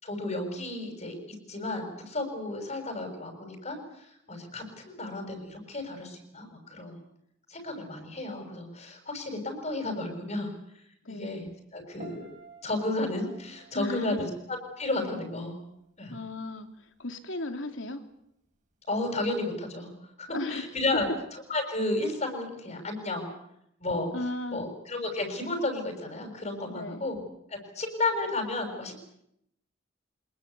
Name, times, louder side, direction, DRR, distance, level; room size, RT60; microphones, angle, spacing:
voice 1, 0.0-7.0 7.5-10.5 11.1-12.3 12.6-15.6 16.0-16.2 18.9-19.9 20.2-21.1 21.3-23.3 23.8-24.1 24.5-27.2 27.5-29.0, left 2 dB, 35° left, 4 dB, 6.4 m, -33 dB
voice 2, 11.0-11.4 13.7-14.3 16.1-16.7 17.0-18.0 20.3-20.6 20.9-21.0 24.1-24.7 26.7-27.1, left 2 dB, 75° left, 7 dB, 3.0 m, -35 dB
Piano, 12.0-15.1 15.4-15.8, right 4 dB, 40° right, 6.1 m, -52 dB
25.5 x 21.0 x 8.3 m, 0.76 s
head